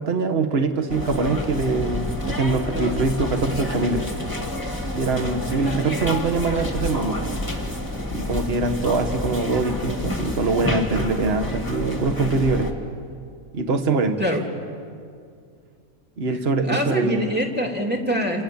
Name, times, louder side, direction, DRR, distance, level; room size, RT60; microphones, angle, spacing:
voice 1, 0.0-4.1 5.0-7.2 8.1-12.7 13.5-14.2 16.2-17.3, right 3 dB, 45° right, 6 dB, 1.7 m, -23 dB
sound 1, 0.9-12.7, left 1 dB, 15° left, 2.2 m, -29 dB
voice 2, 5.5-5.8 14.2-14.4 16.6-18.4, equal, 5° right, 2 dB, 3.2 m, -25 dB
28.5 x 28.5 x 7.2 m, 2.3 s
omnidirectional pair, 1.5 m